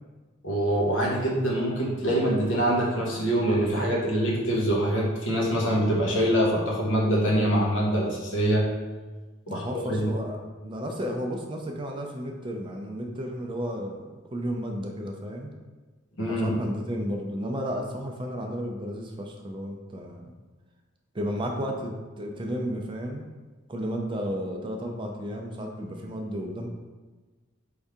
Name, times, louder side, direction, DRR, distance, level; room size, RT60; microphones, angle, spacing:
voice 1, 0.4-8.7 9.5-10.1 16.2-16.5, right 1 dB, 70° left, -3 dB, 1.0 m, -24 dB
voice 2, 9.5-10.4 10.6-15.5 16.3-20.3 21.1-23.2 23.7-26.7, equal, 25° right, 2 dB, 0.4 m, -33 dB
4.6 x 2.7 x 3.5 m, 1.3 s
head